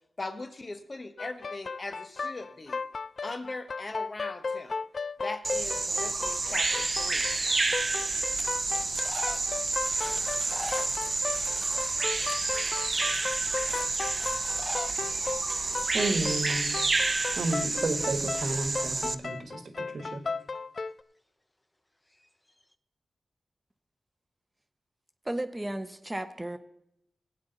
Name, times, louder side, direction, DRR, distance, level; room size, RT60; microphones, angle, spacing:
voice 1, 0.2-2.8 3.2-4.8 5.2-7.3, left 2 dB, 40° left, 9 dB, 1.1 m, -40 dB
sound 1, 1.2-21.0, left 4 dB, 65° left, 0.3 m, -36 dB
Bird vocalization bird call bird song, 5.4-19.1, right 3 dB, 45° right, 0.7 m, -29 dB
sound 2, 9.0-9.6 10.3-11.5 11.8-12.2 12.8-12.9 14.4-15.0 15.3-15.4 15.6-15.7 16.4-16.7 16.9-18.1 22.1-22.7, left 1 dB, 15° left, 0.6 m, -43 dB
voice 2, 15.9-16.7 17.4-20.2, right 2 dB, 70° right, 7 dB, 1.4 m, -32 dB
voice 3, 25.2-26.6, right 1 dB, 15° right, 9 dB, 0.8 m, -34 dB
17.5 x 8.7 x 4.0 m, 0.80 s
cardioid pair, 70°, 0 cm